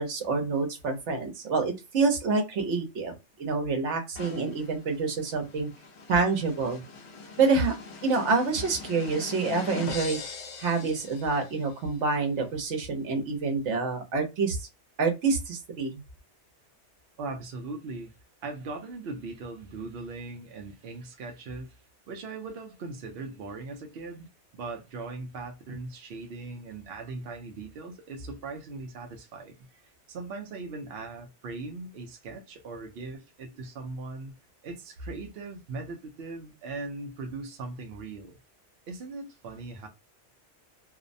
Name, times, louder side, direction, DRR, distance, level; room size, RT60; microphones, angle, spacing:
voice 1, 0.0-3.1 3.4-5.7 6.1-6.8 7.4-7.7 8.0-10.2 10.6-14.7 15.0-16.0, right 4 dB, 80° right, 1.1 m, -27 dB
sound 1, 4.2-11.7, left 4 dB, 70° left, 0.9 m, -42 dB
voice 2, 17.2-18.1 18.4-21.8 22.1-24.3 24.5-34.3 34.6-38.4 38.9-39.9, right 3 dB, 65° right, 0.8 m, -39 dB
2.6 x 2.1 x 2.5 m
omnidirectional pair, 1.2 m